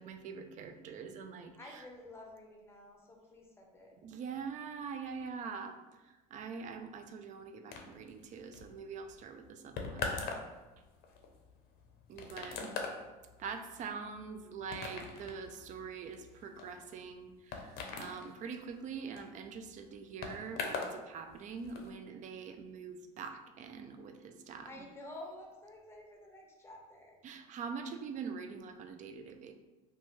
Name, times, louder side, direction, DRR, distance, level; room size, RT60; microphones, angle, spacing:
voice 1, 0.0-1.8 4.0-5.8 6.3-10.2 12.1-12.8 13.4-24.7 27.2-29.5, right 5 dB, 40° right, 7 dB, 0.4 m, -44 dB
voice 2, 1.5-4.0 12.1-12.4 24.6-27.2, left 1 dB, 15° left, 0 dB, 0.7 m, -51 dB
sound 1, 7.7-21.0 21.3-21.9, left 4 dB, 55° left, 0.6 m, -42 dB
2.7 x 2.3 x 3.0 m, 1.2 s
hypercardioid pair, 85°, 19 cm